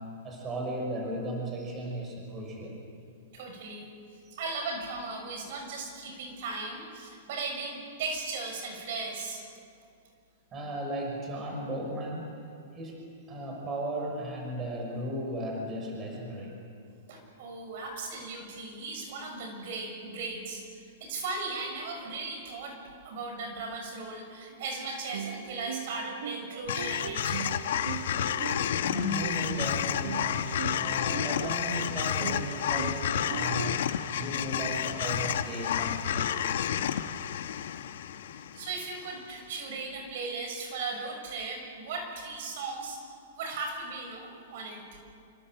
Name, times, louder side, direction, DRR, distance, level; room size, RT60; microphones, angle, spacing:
voice 1, 0.0-2.8 4.2-4.4 10.5-12.3 12.7-13.0 13.3-16.6 28.8-36.3, equal, 20° right, 0 dB, 5.9 m, -36 dB
voice 2, 3.3-3.9 4.4-9.4 17.1-22.8 23.0-27.5 38.5-43.0 43.3-44.8, right 3 dB, 55° right, 3 dB, 6.5 m, -37 dB
sound 1, 25.1-33.8, right 8 dB, 90° right, 0.9 m, -39 dB
sound 2, 26.7-39.0, left 9 dB, 70° left, 1.4 m, -30 dB
27.0 x 25.5 x 7.8 m, 2.5 s
hypercardioid pair, 155°, 0 cm